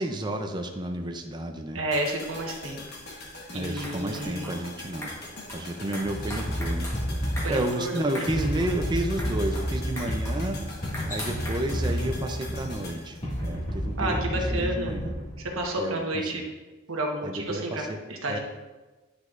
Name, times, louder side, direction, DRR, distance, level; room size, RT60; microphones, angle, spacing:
voice 1, 0.0-1.8 3.5-5.2 5.5-6.9 7.5-10.6 11.1-15.1 15.8-16.0 16.2-16.4 17.2-18.0 18.3-18.4, right 1 dB, 20° right, 4 dB, 0.5 m, -31 dB
voice 2, 1.7-2.8 3.5-4.5 7.4-8.3 14.0-15.0 15.4-16.4 16.9-17.8 18.1-18.4, right 1 dB, 75° right, 1 dB, 1.3 m, -30 dB
sound 1, 1.9-14.1 14.4-14.5, left 2 dB, 50° left, 1.3 m, -43 dB
sound 2, 3.5-13.0, equal, 15° left, 1.2 m, -42 dB
sound 3, 6.0-15.6, equal, 30° left, 2.0 m, -31 dB
9.8 x 6.3 x 2.5 m, 1.2 s
head